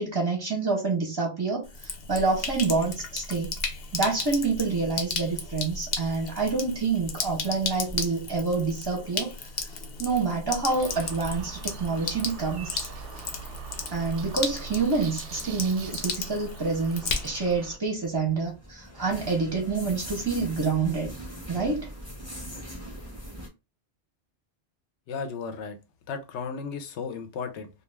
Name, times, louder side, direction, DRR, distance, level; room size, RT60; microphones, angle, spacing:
voice 1, 0.0-3.6 3.9-9.3 9.6-12.9 13.9-21.1 21.5-21.9, right 4 dB, 30° right, 0.5 m, -27 dB
Sink (filling or washing), 1.6-17.6, left 4 dB, 65° left, 0.8 m, -35 dB
sound 1, 10.7-17.8, right 6 dB, 85° right, 0.9 m, -42 dB
sound 2, 17.8-23.5, equal, 15° left, 0.8 m, -41 dB
voice 2, 25.1-25.8 26.1-27.7, left 5 dB, 85° left, 0.9 m, -34 dB
2.3 x 2.3 x 3.2 m
omnidirectional pair, 1.1 m